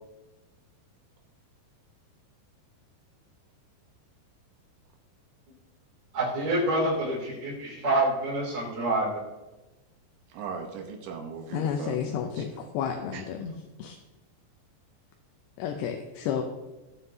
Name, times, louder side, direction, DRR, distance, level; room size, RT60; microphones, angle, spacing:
voice 1, 6.1-9.2, right 1 dB, 25° right, -7 dB, 3.3 m, -27 dB
voice 2, 10.3-12.6 13.1-13.2, right 5 dB, 80° right, 3 dB, 3.2 m, -39 dB
voice 3, 11.5-13.5 13.8-14.0 15.6-16.4, left 8 dB, 80° left, 4 dB, 2.7 m, -31 dB
17.0 x 7.6 x 2.7 m, 1.1 s
omnidirectional pair, 5.2 m